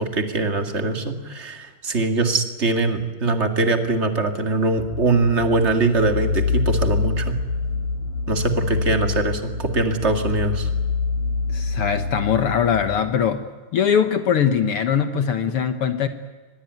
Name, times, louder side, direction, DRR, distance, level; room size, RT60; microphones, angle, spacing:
voice 1, 0.0-7.3 8.3-10.7, right 3 dB, 25° right, 6 dB, 1.7 m, -22 dB
sound 1, 4.8-13.1, left 4 dB, 85° left, 4.3 m, -26 dB
voice 2, 11.5-13.5 13.7-16.1, left 7 dB, 60° left, 9 dB, 1.5 m, -21 dB
24.5 x 20.5 x 9.3 m, 1.3 s
omnidirectional pair, 3.8 m